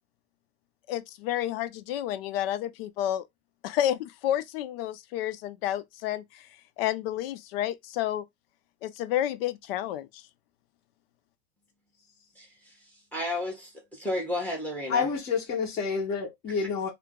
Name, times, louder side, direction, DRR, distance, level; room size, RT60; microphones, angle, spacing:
voice 1, 0.9-3.3 3.6-6.5 6.8-8.2 8.8-10.2, left 12 dB, 70° left, 0.6 m, -30 dB
voice 2, 12.4-12.7 13.1-15.1 16.5-16.7, left 1 dB, 5° left, 1.0 m, -33 dB
voice 3, 14.9-16.9, left 5 dB, 30° left, 1.2 m, -28 dB
2.8 x 2.0 x 3.5 m
supercardioid pair, 140°, 30 cm